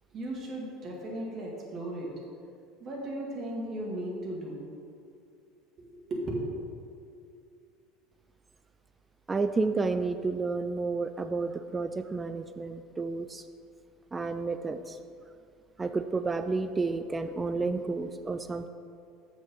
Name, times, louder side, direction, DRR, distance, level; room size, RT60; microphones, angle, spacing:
voice 1, 0.1-2.1 2.8-4.6 5.8-6.7, right 1 dB, 40° right, -2 dB, 2.1 m, -36 dB
voice 2, 9.3-13.4 14.1-15.0 15.8-18.7, right 3 dB, 20° right, 9 dB, 0.4 m, -31 dB
7.0 x 6.3 x 5.4 m, 2.4 s
figure-of-eight pair, 70°, 0 cm